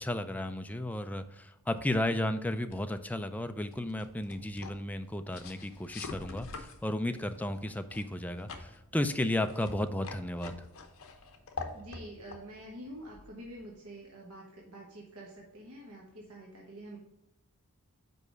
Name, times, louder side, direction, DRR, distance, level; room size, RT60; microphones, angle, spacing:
voice 1, 0.0-10.5, left 1 dB, 5° left, 8 dB, 0.4 m, -33 dB
sound 1, 2.7-13.8, left 3 dB, 65° left, 0.9 m, -47 dB
voice 2, 11.7-17.0, right 1 dB, 70° right, -3 dB, 1.3 m, -47 dB
5.3 x 4.8 x 6.3 m, 0.90 s
head